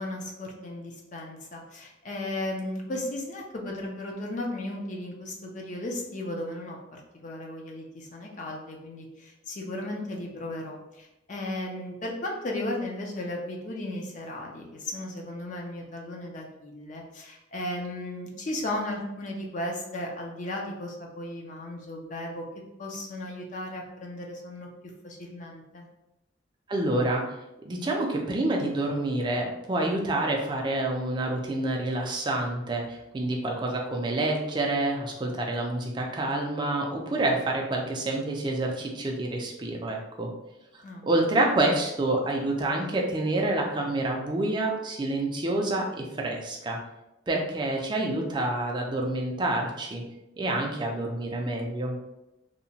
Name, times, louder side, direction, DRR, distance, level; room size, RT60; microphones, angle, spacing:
voice 1, 0.0-22.4 22.8-24.7 25.0-25.8 40.8-41.1, left 1 dB, 40° left, 0 dB, 0.4 m, -35 dB
voice 2, 26.7-27.2 27.6-40.3 40.7-46.8 47.3-50.0 50.4-52.0, right 2 dB, 25° right, 0 dB, 0.4 m, -28 dB
2.8 x 2.1 x 2.7 m, 0.92 s
head